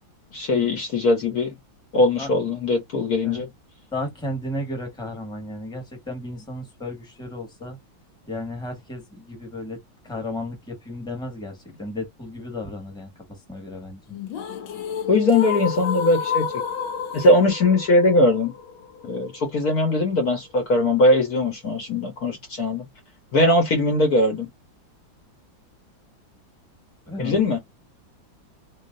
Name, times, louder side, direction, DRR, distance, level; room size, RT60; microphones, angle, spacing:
voice 1, 0.3-1.5 1.9-3.5 15.1-16.4 17.1-18.5 19.0-22.9 23.3-24.5 27.2-27.6, left 2 dB, 55° left, 1.5 m, -20 dB
voice 2, 3.9-7.8 8.3-9.8 10.0-14.0 27.1-27.4, left 1 dB, ahead, 1.5 m, -34 dB
sound 1, 14.1-20.1, left 7 dB, 75° left, 1.6 m, -30 dB
3.9 x 3.1 x 2.5 m
omnidirectional pair, 2.2 m